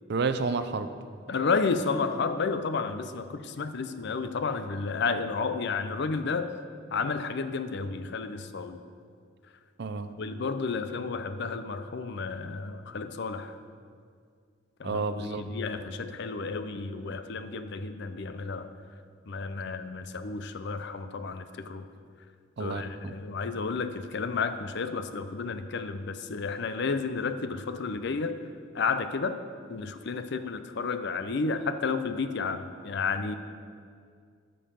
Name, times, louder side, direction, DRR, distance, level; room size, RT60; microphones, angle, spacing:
voice 1, 0.1-0.9 9.8-10.1 14.8-15.4 22.6-23.1, right 4 dB, 55° right, 10 dB, 0.5 m, -30 dB
voice 2, 1.3-6.5 6.9-8.8 10.2-13.6 14.8-18.7 19.3-21.9 22.6-28.4 28.7-29.4 29.7-33.4, left 4 dB, 60° left, 10 dB, 0.5 m, -31 dB
13.5 x 5.4 x 5.6 m, 2.2 s
head